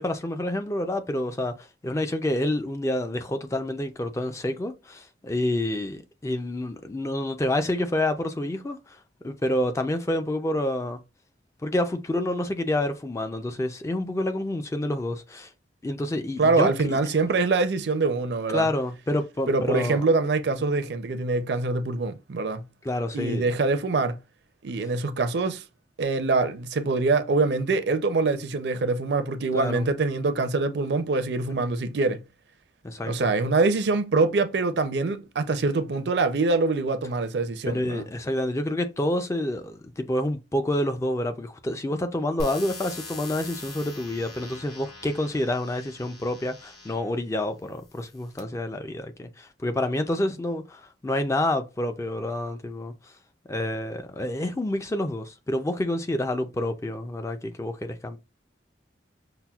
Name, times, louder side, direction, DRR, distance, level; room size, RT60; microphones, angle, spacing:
voice 1, 0.0-11.0 11.6-15.5 15.8-17.1 18.5-20.0 22.8-23.5 29.5-29.9 31.6-31.7 32.8-33.3 37.7-53.1 53.5-58.2, left 1 dB, 15° left, 0.3 m, -28 dB
voice 2, 16.4-18.7 19.5-22.6 23.1-24.2 24.6-25.6 26.0-32.2 33.1-38.0, right 3 dB, 65° right, 0.5 m, -24 dB
sound 1, 42.4-47.1 47.8-48.4, left 2 dB, 60° left, 1.1 m, -41 dB
5.6 x 2.1 x 2.3 m
head